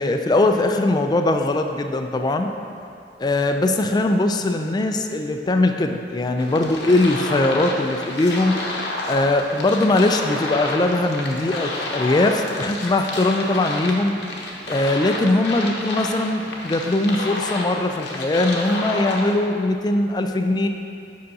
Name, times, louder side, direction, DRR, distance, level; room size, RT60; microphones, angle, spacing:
voice 1, 0.0-2.5 3.2-8.6 9.1-14.2 14.7-20.7, left 2 dB, 25° left, 5 dB, 0.3 m, -21 dB
sound 1, 6.4-19.4, left 2 dB, 75° left, 0.9 m, -30 dB
7.7 x 5.6 x 2.7 m, 2.4 s
head